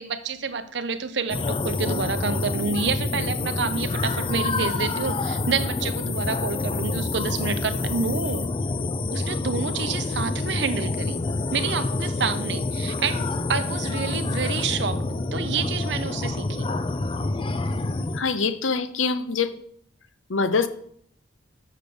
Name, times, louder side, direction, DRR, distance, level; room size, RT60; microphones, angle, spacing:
voice 1, 0.0-8.6 9.1-11.2 11.5-16.7, right 5 dB, 60° right, 10 dB, 0.7 m, -28 dB
sound 1, 1.3-18.2, left 3 dB, 25° left, 0.4 m, -27 dB
voice 2, 18.1-19.6 20.3-20.7, left 4 dB, 85° left, 11 dB, 0.6 m, -24 dB
6.6 x 5.2 x 6.8 m, 0.65 s
head